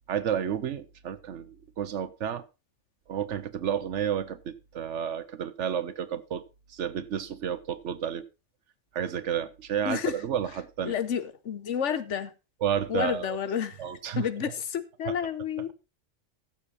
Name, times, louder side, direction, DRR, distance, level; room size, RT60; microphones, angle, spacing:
voice 1, 0.1-2.4 3.1-6.4 6.7-8.3 8.9-10.9 12.6-13.4 13.8-14.3 15.1-15.2, right 9 dB, 70° right, 1.2 m, -31 dB
voice 2, 10.8-12.3 12.9-13.8 14.1-15.7, left 8 dB, 75° left, 1.2 m, -30 dB
14.0 x 7.0 x 4.1 m
omnidirectional pair, 1.3 m